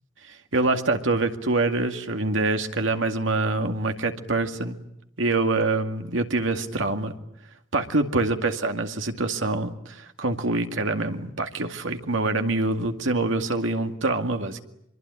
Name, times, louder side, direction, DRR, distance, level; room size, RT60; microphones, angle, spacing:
voice 1, 0.2-4.8 5.2-7.1 7.7-14.6, right 2 dB, 90° right, 5 dB, 2.2 m, -25 dB
24.5 x 23.5 x 9.9 m, 0.80 s
head